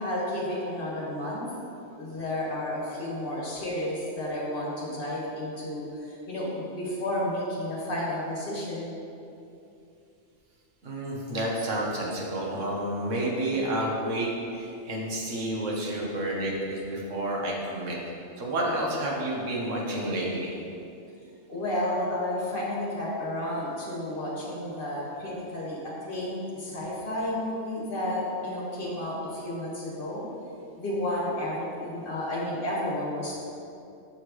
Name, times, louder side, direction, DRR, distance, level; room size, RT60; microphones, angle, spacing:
voice 1, 0.0-1.4 2.0-8.9 21.5-30.2 30.8-33.4, left 1 dB, 45° left, -6 dB, 1.7 m, -31 dB
voice 2, 10.8-18.0 18.4-20.5, right 1 dB, 85° right, -2 dB, 1.4 m, -30 dB
6.4 x 6.1 x 3.1 m, 2.7 s
omnidirectional pair, 1.2 m